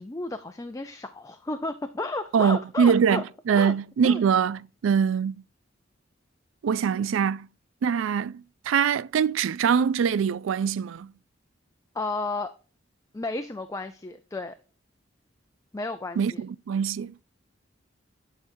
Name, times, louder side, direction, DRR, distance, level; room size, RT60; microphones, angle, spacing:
voice 1, 0.0-3.2 3.5-3.7 4.0-4.2 11.9-12.5 13.1-14.5 15.7-16.4, left 2 dB, 15° left, 0.5 m, -33 dB
voice 2, 2.3-5.4 6.6-7.5 7.8-11.1 16.2-17.2, right 7 dB, 85° right, 0.3 m, -23 dB
12.0 x 5.0 x 2.7 m
head